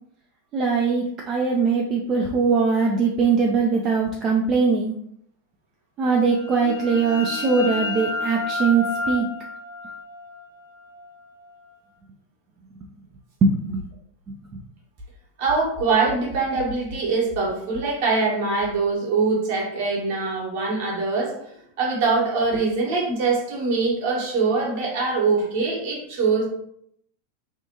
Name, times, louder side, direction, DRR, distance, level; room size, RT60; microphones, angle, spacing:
voice 1, 0.5-4.9 6.0-9.3 13.4-13.8 14.3-14.4, right 4 dB, 30° right, 0 dB, 0.4 m, -21 dB
sound 1, 6.2-11.7, left 2 dB, 80° right, 1.1 m, -31 dB
voice 2, 15.4-21.3 21.8-26.5, right 4 dB, 50° right, -2 dB, 1.2 m, -23 dB
3.4 x 2.5 x 2.8 m, 0.71 s
figure-of-eight pair, 90°, 0 cm